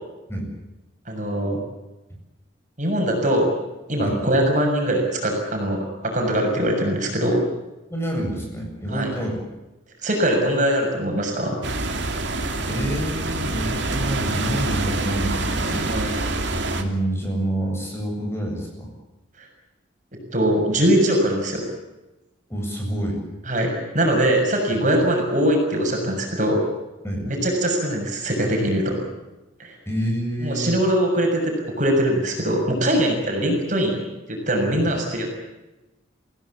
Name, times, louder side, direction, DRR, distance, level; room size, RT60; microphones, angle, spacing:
voice 1, 1.1-1.6 2.8-3.6 3.9-7.4 8.9-9.1 10.0-11.6 15.9-16.1 19.4-19.5 20.1-21.6 23.5-26.6 27.3-29.0 29.6-29.7 30.4-35.3, right 1 dB, 40° right, 1 dB, 6.9 m, -22 dB
voice 2, 7.9-9.4 12.6-15.9 16.7-18.9 22.5-23.2 27.0-27.3 29.9-30.8 34.8-34.9, right 1 dB, 15° left, 0 dB, 7.7 m, -27 dB
sound 1, 11.6-16.8, right 2 dB, 65° right, 2.8 m, -26 dB
26.5 x 17.0 x 8.5 m, 1.0 s
head